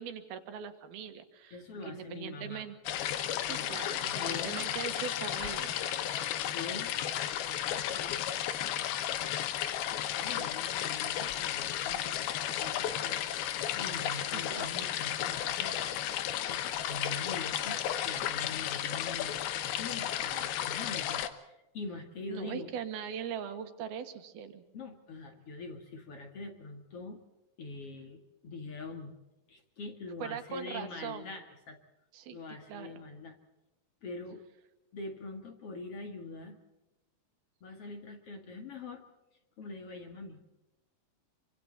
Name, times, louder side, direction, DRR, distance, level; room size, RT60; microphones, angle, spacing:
voice 1, 0.0-1.6 1.9-2.8 3.4-5.8 14.3-14.7 22.3-24.6 30.2-31.3 32.1-32.4 32.7-32.9, right 8 dB, 80° right, 8 dB, 3.4 m, -41 dB
voice 2, 1.5-2.7 3.5-4.6 6.5-6.9 7.4-8.9 10.2-13.2 13.7-15.8 16.5-19.4 19.8-22.7 24.7-27.2 27.6-29.2 29.5-31.8 32.3-33.4 34.0-34.4 34.9-36.6 37.6-39.0 39.6-40.4, left 3 dB, 45° left, 4 dB, 2.6 m, -44 dB
sound 1, 2.9-21.3, left 11 dB, 80° left, 3.0 m, -33 dB
26.5 x 25.0 x 4.1 m, 0.97 s
omnidirectional pair, 4.4 m